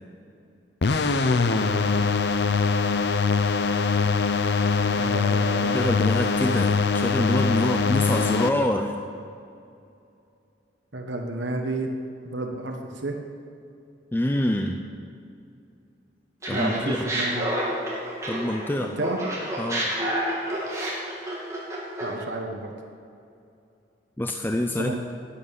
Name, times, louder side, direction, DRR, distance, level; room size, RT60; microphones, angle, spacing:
sound 1, 0.8-8.5, left 4 dB, 65° left, 0.6 m, -23 dB
voice 1, 4.8-5.9 10.9-11.9 12.2-13.2 16.5-17.6 18.8-19.2 22.0-22.7 24.8-25.0, right 2 dB, 85° right, 3 dB, 1.3 m, -31 dB
voice 2, 5.7-9.0 14.1-14.8 16.5-17.1 18.3-19.0 19.6-19.9 24.2-25.0, left 1 dB, 10° left, 4 dB, 0.5 m, -26 dB
Laughter, 16.4-18.7 19.0-22.2, right 1 dB, 15° right, 2.8 m, -29 dB
11.5 x 8.6 x 9.3 m, 2.5 s
head